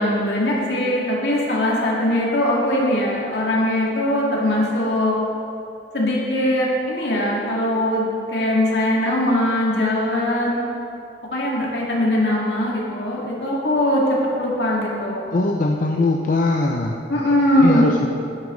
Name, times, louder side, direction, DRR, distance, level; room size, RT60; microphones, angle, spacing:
voice 1, 0.0-5.2 5.9-10.7 11.3-14.0 14.4-15.3 17.1-17.9, left 1 dB, 75° left, -4 dB, 2.1 m, -21 dB
voice 2, 15.3-16.9 17.6-18.1, left 2 dB, 45° left, 1 dB, 0.5 m, -20 dB
10.0 x 9.2 x 3.8 m, 2.7 s
head